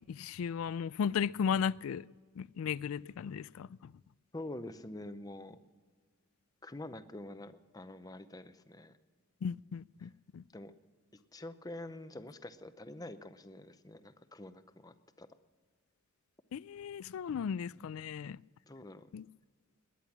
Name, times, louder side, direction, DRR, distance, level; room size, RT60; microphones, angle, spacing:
voice 1, 0.1-2.0 2.4-3.9 9.4-10.4 16.5-18.4 19.1-19.2, left 7 dB, 85° left, 0.3 m, -35 dB
voice 2, 4.3-5.6 6.6-9.0 10.0-10.1 10.5-10.7 11.3-15.3 18.7-19.1, left 1 dB, 20° left, 0.7 m, -46 dB
20.5 x 10.0 x 6.0 m
head